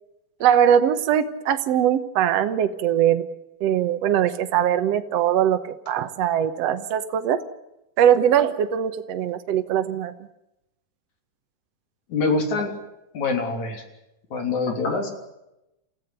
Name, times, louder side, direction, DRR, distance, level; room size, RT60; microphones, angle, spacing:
voice 1, 0.4-3.3 3.6-7.4 8.0-10.1, right 9 dB, 65° right, 8 dB, 1.8 m, -21 dB
voice 2, 12.1-12.7 13.1-13.8 14.3-15.1, left 3 dB, 55° left, 4 dB, 4.4 m, -24 dB
29.5 x 15.5 x 8.3 m, 0.89 s
omnidirectional pair, 3.9 m